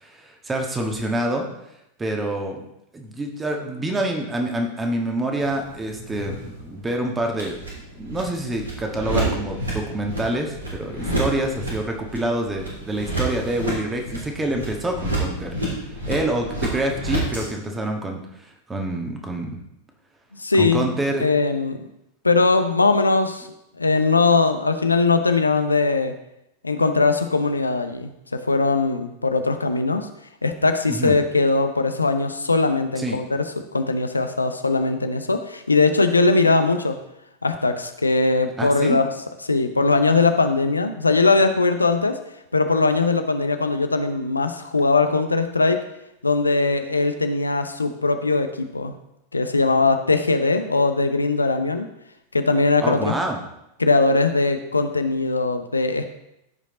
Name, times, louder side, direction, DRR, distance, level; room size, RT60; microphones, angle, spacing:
voice 1, 0.0-1.5 2.0-2.7 2.9-7.5 7.9-18.2 18.7-19.6 20.6-21.3 30.9-31.2 33.0-33.2 38.6-39.0 52.8-53.4, right 1 dB, 15° right, 2 dB, 1.6 m, -27 dB
sound 1, 5.4-17.4, right 2 dB, 75° right, 3.4 m, -30 dB
voice 2, 20.3-21.8 22.2-23.5 23.8-26.1 26.6-30.1 30.4-37.0 37.4-39.1 39.4-42.2 42.5-45.8 46.2-48.9 49.3-51.9 52.3-53.1 53.8-56.1, left 3 dB, 80° left, 8 dB, 0.7 m, -20 dB
14.5 x 5.2 x 3.8 m, 0.84 s
figure-of-eight pair, 90°, 0 cm